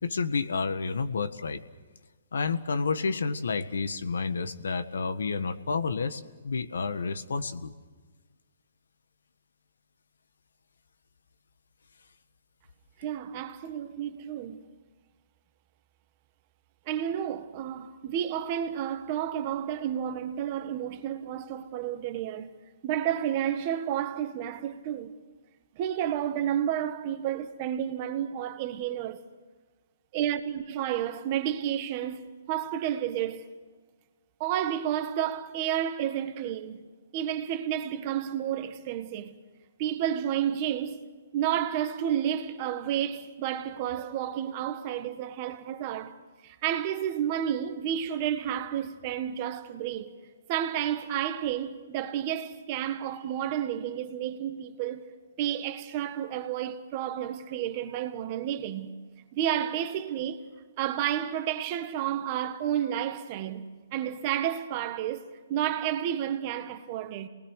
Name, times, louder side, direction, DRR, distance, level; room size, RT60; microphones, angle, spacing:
voice 1, 0.0-1.6 2.3-7.7, left 4 dB, 90° left, 1.6 m, -30 dB
voice 2, 13.0-14.7 16.9-22.5 22.8-25.1 25.7-29.2 30.1-33.4 34.4-36.8 37.1-39.3 39.8-41.0 41.3-50.1 50.5-55.1 55.4-58.9 59.3-60.4 60.8-63.7 63.9-67.3, right 10 dB, 30° right, 1.5 m, -31 dB
28.5 x 20.0 x 6.4 m
hypercardioid pair, 165°, 0 cm